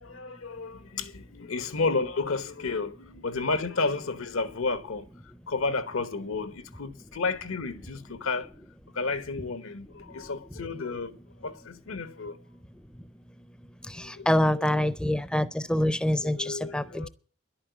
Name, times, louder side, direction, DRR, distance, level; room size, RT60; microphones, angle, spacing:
voice 1, 0.0-5.1 5.5-8.5 8.9-12.4 14.0-14.9 16.2-17.1, left 3 dB, 80° left, 1.1 m, -32 dB
voice 2, 14.0-17.1, left 1 dB, 5° left, 0.5 m, -26 dB
11.5 x 8.6 x 8.1 m
head